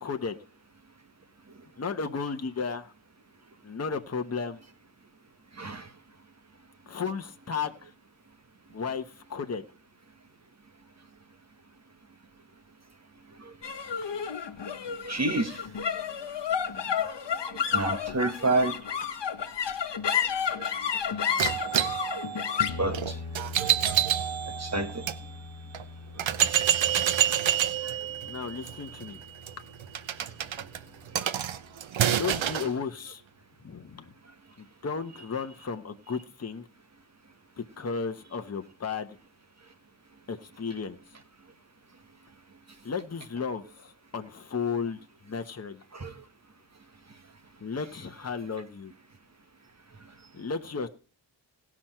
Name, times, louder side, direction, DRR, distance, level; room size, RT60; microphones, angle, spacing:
voice 1, 0.0-0.4 1.8-2.9 3.6-4.6 6.9-7.9 8.7-9.0 9.3-9.6 28.3-29.2 32.1-33.2 33.6-34.1 34.6-36.7 37.6-39.2 40.3-41.0 42.8-45.0 45.2-45.8 47.6-48.9 50.3-50.9, left 5 dB, 35° left, 7 dB, 1.0 m, -34 dB
voice 2, 5.6-5.9 13.4-13.5 15.0-15.6 17.5-18.8 20.6-20.7 21.8-21.9 22.8-23.7 24.6-25.0 26.6-26.7 27.8-28.0 31.2-31.3 45.9-46.1, right 2 dB, 35° right, 8 dB, 1.6 m, -30 dB
sound 1, 13.6-30.2, left 7 dB, 65° left, 1.2 m, -33 dB
sound 2, 21.4-25.2 25.7-25.8 26.2-32.7, right 10 dB, 85° right, 0.8 m, -28 dB
18.0 x 6.1 x 4.4 m, 0.39 s
wide cardioid pair, 110°, 45 cm